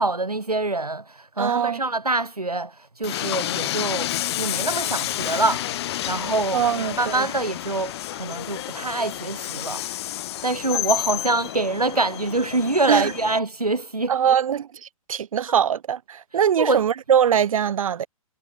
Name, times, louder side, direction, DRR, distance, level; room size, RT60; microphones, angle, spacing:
voice 1, 0.0-9.8 10.4-14.1 16.3-16.8, right 2 dB, 90° right, 2.2 m, -25 dB
voice 2, 1.4-1.8 6.5-7.2 12.9-13.1 14.1-18.1, right 8 dB, 65° right, 0.6 m, -22 dB
Train, 3.0-13.4, left 14 dB, 45° left, 4.2 m, -30 dB
figure-of-eight pair, 120°, 19 cm